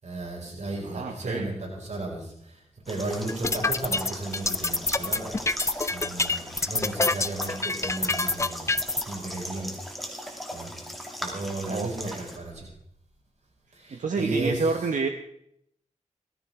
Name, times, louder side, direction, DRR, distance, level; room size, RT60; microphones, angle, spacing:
voice 1, 0.0-2.6 2.9-5.4 5.9-8.7 9.1-9.7 10.5-10.7 11.2-12.7 13.7-14.6, right 2 dB, 65° right, -2 dB, 5.6 m, -34 dB
voice 2, 0.8-1.5 11.7-12.3 13.9-15.1, right 4 dB, 90° right, 4 dB, 1.0 m, -29 dB
sound 1, 2.9-12.4, equal, ahead, 2.6 m, -39 dB
sound 2, 3.3-9.0, left 3 dB, 25° left, 0.4 m, -26 dB
18.5 x 14.0 x 3.7 m, 0.73 s
wide cardioid pair, 95°, 13 cm